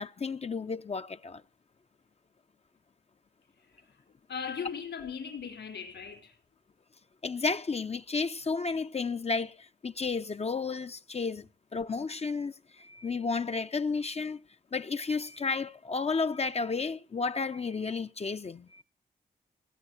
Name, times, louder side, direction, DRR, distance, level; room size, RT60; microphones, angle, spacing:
voice 1, 0.0-1.4 7.2-14.4 14.7-18.8, left 4 dB, 35° left, 0.6 m, -32 dB
voice 2, 4.3-6.3, left 6 dB, 75° left, 4.6 m, -38 dB
18.0 x 7.5 x 6.4 m
cardioid pair, 55°, 18 cm